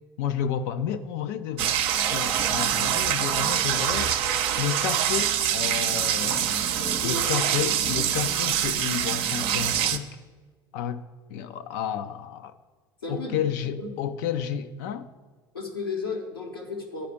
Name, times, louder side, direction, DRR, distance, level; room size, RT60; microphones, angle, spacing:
voice 1, 0.2-1.8 2.1-6.6 7.0-10.2 10.7-11.0 11.3-12.5 13.1-15.1, left 9 dB, 65° left, 0.6 m, -31 dB
sound 1, 1.6-10.0, right 10 dB, 55° right, 0.7 m, -25 dB
voice 2, 6.8-7.3 13.0-13.5 13.8-13.9 15.5-17.1, left 3 dB, 90° left, 1.4 m, -34 dB
10.0 x 4.9 x 8.1 m
figure-of-eight pair, 70°, 12 cm